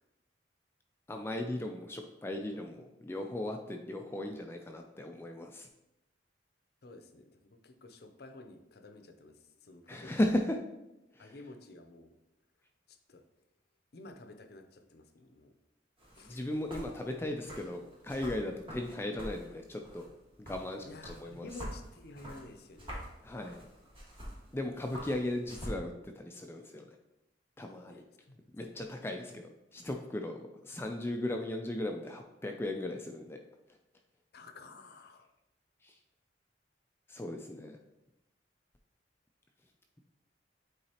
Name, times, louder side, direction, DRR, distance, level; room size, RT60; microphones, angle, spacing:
voice 1, 1.1-5.7 9.9-10.6 11.2-11.3 16.2-20.1 20.4-21.5 23.2-23.6 24.5-26.8 27.6-28.0 28.5-33.4 35.8-35.9 37.1-37.8, left 1 dB, 15° left, 3 dB, 0.3 m, -37 dB
voice 2, 6.8-10.2 11.2-12.2 12.9-13.2 13.9-15.5 16.2-16.5 20.8-22.9 27.9-28.4 34.3-35.3, left 2 dB, 55° left, 7 dB, 0.6 m, -51 dB
sound 1, 16.0-25.8, equal, 30° right, 1.6 m, -47 dB
8.5 x 3.9 x 2.9 m, 0.94 s
head